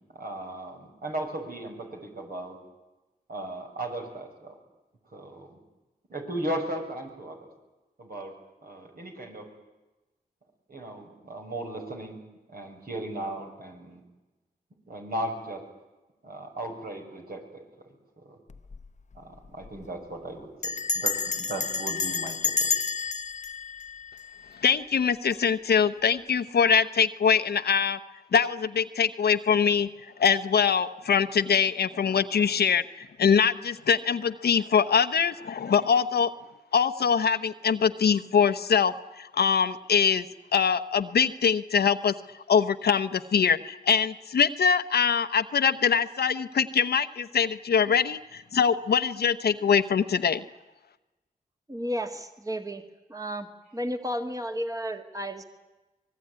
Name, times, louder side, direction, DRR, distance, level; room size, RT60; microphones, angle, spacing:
voice 1, 0.0-2.6 3.3-4.6 5.1-5.6 6.1-7.5 8.0-8.3 8.6-9.5 10.7-12.2 12.5-14.0 14.9-15.6 16.2-17.6 18.2-18.4 19.1-22.7, right 1 dB, 65° right, 2 dB, 6.5 m, -36 dB
Bell, 18.5-18.9 19.1-19.2 19.5-19.8 20.6-24.7, left 5 dB, 45° left, 0.9 m, -30 dB
voice 2, 24.6-28.0 28.3-29.9 30.2-36.3 36.7-40.2 40.5-42.1 42.5-50.4, left 7 dB, 90° left, 12 dB, 1.0 m, -23 dB
voice 3, 51.7-52.8 53.1-55.5, equal, 20° right, 6 dB, 1.9 m, -33 dB
24.5 x 20.5 x 9.7 m, 1.1 s
cardioid pair, 55°, 16 cm